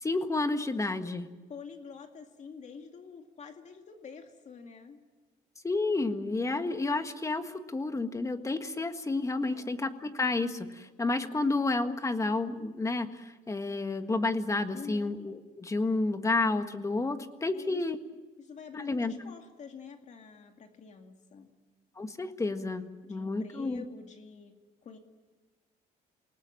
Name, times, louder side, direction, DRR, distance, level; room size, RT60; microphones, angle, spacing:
voice 1, 0.0-1.3 5.6-18.0 18.7-19.1 22.0-23.8, left 3 dB, 20° left, 8 dB, 1.6 m, -30 dB
voice 2, 1.5-5.0 9.4-9.8 14.7-15.2 17.5-17.8 18.4-21.5 23.0-24.6 24.8-25.0, left 6 dB, 45° left, 5 dB, 2.3 m, -47 dB
28.0 x 19.0 x 7.7 m, 1.3 s
cardioid pair, 110°, 17 cm